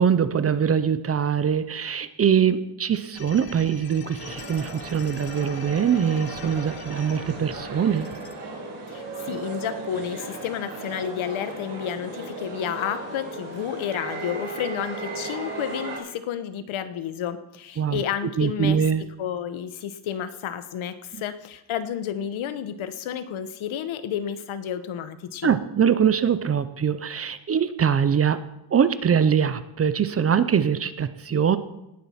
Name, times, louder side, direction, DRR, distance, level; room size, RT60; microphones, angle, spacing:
voice 1, 0.0-8.1 17.8-18.0 18.4-19.0 21.1-21.2 25.4-28.4 28.7-31.6, right 7 dB, 30° right, 13 dB, 0.5 m, -23 dB
sound 1, 3.1-8.3, left 7 dB, 50° left, 1.1 m, -43 dB
sound 2, 4.2-16.0, right 3 dB, 85° right, 4.6 m, -36 dB
voice 2, 8.9-18.8 19.2-25.5, left 9 dB, 85° left, 12 dB, 1.1 m, -31 dB
18.5 x 7.4 x 5.6 m, 0.89 s
wide cardioid pair, 175°, 47 cm